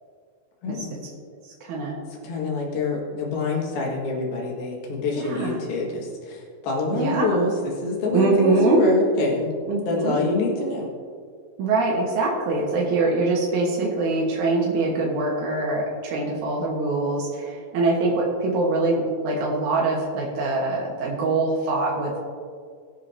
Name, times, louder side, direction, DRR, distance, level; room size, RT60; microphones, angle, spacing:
voice 1, 0.6-1.0 2.2-9.5 9.8-10.9, left 2 dB, 60° left, -2 dB, 3.2 m, -26 dB
voice 2, 1.4-2.0 5.1-5.6 6.9-7.5 8.1-8.8 9.7-10.2 11.6-22.1, right 2 dB, 80° right, -3 dB, 1.7 m, -23 dB
21.5 x 7.6 x 2.7 m, 2.1 s
omnidirectional pair, 5.5 m